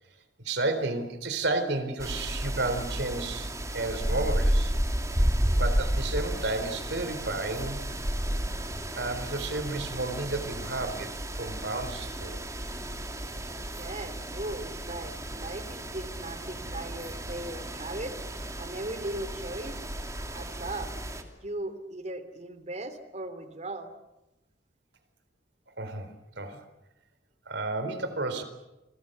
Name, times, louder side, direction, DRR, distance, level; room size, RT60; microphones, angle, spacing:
voice 1, 0.4-4.7 5.6-7.8 8.9-12.4 25.7-26.6 27.5-28.4, right 2 dB, 65° right, 10 dB, 4.0 m, -32 dB
sound 1, 2.0-21.2, equal, 20° right, 2.8 m, -32 dB
voice 2, 13.8-18.2 18.6-19.8 20.3-20.9 21.4-23.9, right 1 dB, 40° right, 11 dB, 3.1 m, -38 dB
28.5 x 24.0 x 6.8 m, 0.95 s
head